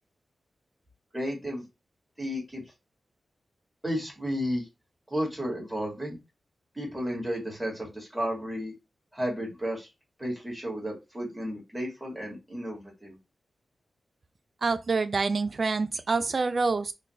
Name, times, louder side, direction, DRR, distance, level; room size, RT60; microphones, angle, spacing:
voice 1, 1.1-1.7 2.2-2.6 3.8-4.7 5.1-6.2 6.7-8.7 9.1-9.9 10.2-13.2, equal, 10° right, 2.2 m, -33 dB
voice 2, 14.6-16.9, right 4 dB, 50° right, 0.5 m, -26 dB
4.0 x 2.6 x 3.2 m
wide cardioid pair, 85°, 0 cm